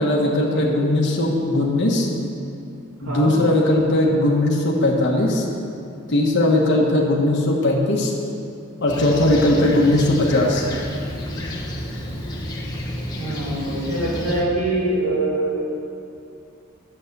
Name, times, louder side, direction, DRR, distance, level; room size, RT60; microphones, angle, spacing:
voice 1, 0.0-2.1 3.0-5.5 6.1-8.1 8.8-10.7, left 1 dB, 55° left, -2 dB, 1.3 m, -19 dB
Fixed-wing aircraft airplane, 8.9-14.4, left 1 dB, 20° left, 1.2 m, -31 dB
voice 2, 13.2-15.7, right 1 dB, 75° right, -8 dB, 2.5 m, -24 dB
8.4 x 7.2 x 6.7 m, 2.6 s
head